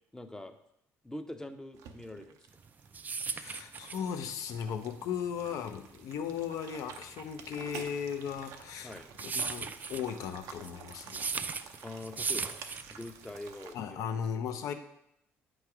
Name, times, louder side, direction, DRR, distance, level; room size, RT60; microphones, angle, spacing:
voice 1, 0.1-0.6 1.0-2.4 8.8-9.1 11.8-12.6 12.9-14.1, left 1 dB, 10° left, 8 dB, 0.6 m, -43 dB
sound 1, 1.7-13.7, right 7 dB, 75° right, 0.6 m, -50 dB
sound 2, 2.6-13.4, right 5 dB, 30° right, 0.3 m, -38 dB
voice 2, 3.2-9.0 9.3-11.3 13.7-14.7, left 7 dB, 70° left, 8 dB, 0.6 m, -37 dB
7.6 x 3.2 x 4.7 m, 0.77 s
supercardioid pair, 75°, 6 cm